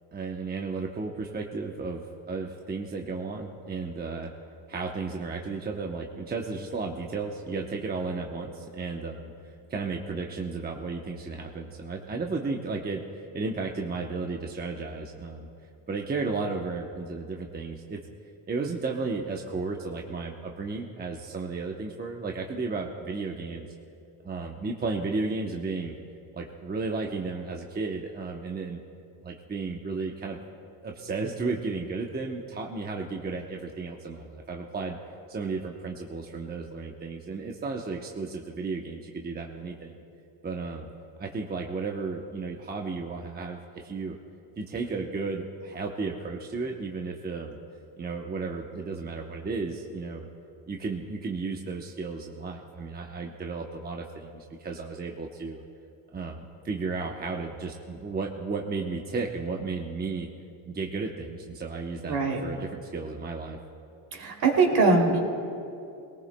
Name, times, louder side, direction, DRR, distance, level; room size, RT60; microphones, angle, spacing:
voice 1, 0.1-4.3 4.7-9.3 9.7-15.5 15.9-18.0 18.5-23.7 24.2-25.9 26.3-28.8 29.2-30.4 30.8-35.0 35.3-40.0 40.4-40.9 41.2-44.2 44.6-47.6 48.0-50.3 50.7-55.6 56.1-60.3 60.7-63.6, right 4 dB, 20° right, 1 dB, 0.8 m, -33 dB
voice 2, 62.1-62.4 64.1-65.2, right 3 dB, 50° right, 0 dB, 2.8 m, -22 dB
21.5 x 18.5 x 2.2 m, 2.7 s
cardioid pair, 110°, 47 cm